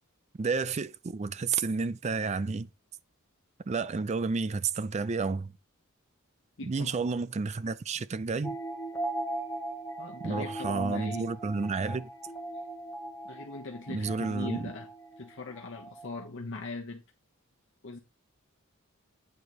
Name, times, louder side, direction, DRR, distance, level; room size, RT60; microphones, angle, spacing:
voice 1, 0.4-2.7 3.7-5.5 6.6-8.6 10.2-12.1 13.9-14.7, right 4 dB, 30° right, 0.4 m, -31 dB
voice 2, 6.6-6.9 10.0-11.3 13.2-14.9 15.2-17.0 17.8-18.0, left 3 dB, 60° left, 1.0 m, -40 dB
sound 1, 8.4-16.3, right 2 dB, 15° left, 1.7 m, -39 dB
8.8 x 4.0 x 4.8 m
head